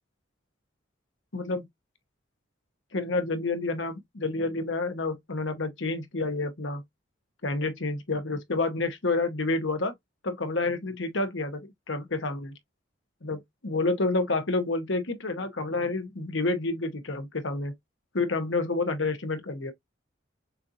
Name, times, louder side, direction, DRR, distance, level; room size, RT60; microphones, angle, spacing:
voice 1, 1.3-1.6 2.9-6.8 7.4-9.9 10.2-12.5 13.2-17.7 18.1-19.7, left 3 dB, 75° left, 1.1 m, -29 dB
6.8 x 2.6 x 2.7 m
head